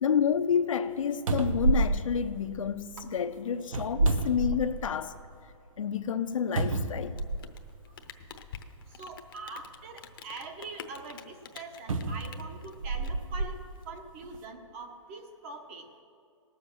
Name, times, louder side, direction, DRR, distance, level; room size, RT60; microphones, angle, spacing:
voice 1, 0.0-5.2 5.8-7.2, left 7 dB, 75° left, 0.7 m, -29 dB
sound 1, 0.9-1.0 1.3-3.0 3.6-5.1 5.5-5.6 6.6-7.7 8.6-8.7 11.9-13.5 14.2-14.4, right 2 dB, 80° right, 1.1 m, -29 dB
Rain, 7.0-13.8, left 7 dB, 45° left, 0.8 m, -48 dB
voice 2, 9.0-13.6 13.9-15.8, right 3 dB, 25° right, 1.0 m, -43 dB
19.0 x 7.3 x 6.2 m
hypercardioid pair, 170°, 17 cm